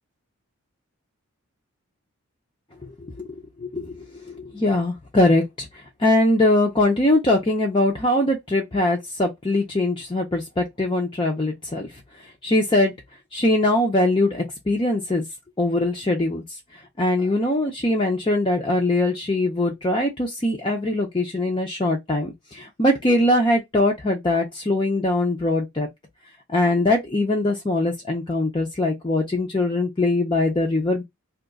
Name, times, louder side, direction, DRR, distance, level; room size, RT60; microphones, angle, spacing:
voice 1, 3.6-5.7 6.0-11.9 12.4-12.9 13.3-15.2 15.6-16.4 17.0-25.9 26.5-31.0, left 1 dB, 20° left, 0.5 m, -22 dB
2.8 x 2.3 x 3.9 m
head